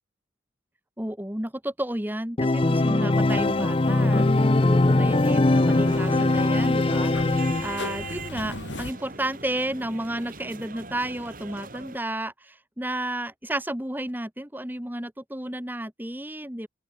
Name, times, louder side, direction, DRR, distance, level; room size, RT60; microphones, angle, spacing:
voice 1, 1.0-16.7, right 1 dB, 10° right, 1.7 m, -32 dB
Organ, 2.4-8.1, left 2 dB, 30° left, 0.5 m, -21 dB
sound 1, 3.1-8.9, left 2 dB, 75° left, 4.2 m, -39 dB
sound 2, 5.1-12.0, right 3 dB, 45° right, 7.4 m, -40 dB
open air
head